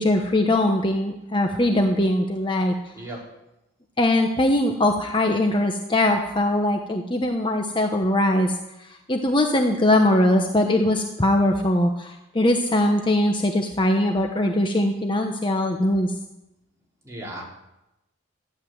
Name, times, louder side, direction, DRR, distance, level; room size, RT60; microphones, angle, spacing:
voice 1, 0.0-2.7 4.0-16.1, left 1 dB, 25° left, 3 dB, 1.0 m, -21 dB
voice 2, 2.9-3.3 17.0-17.4, right 1 dB, 15° right, -4 dB, 4.7 m, -36 dB
15.0 x 11.0 x 7.9 m, 0.92 s
head